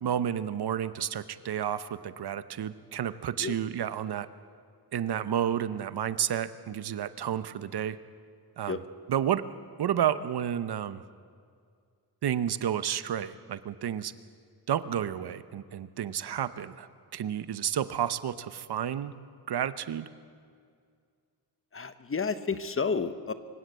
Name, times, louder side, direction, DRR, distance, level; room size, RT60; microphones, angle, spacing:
voice 1, 0.0-4.3 4.9-8.0 8.6-8.8 9.1-9.4 9.8-11.0 12.2-14.1 14.7-16.9 17.1-19.1 19.5-20.1, right 9 dB, 70° right, 14 dB, 0.9 m, -31 dB
voice 2, 21.7-23.3, left 5 dB, 30° left, 12 dB, 0.9 m, -31 dB
25.5 x 16.0 x 8.0 m, 2.2 s
wide cardioid pair, 140°, 41 cm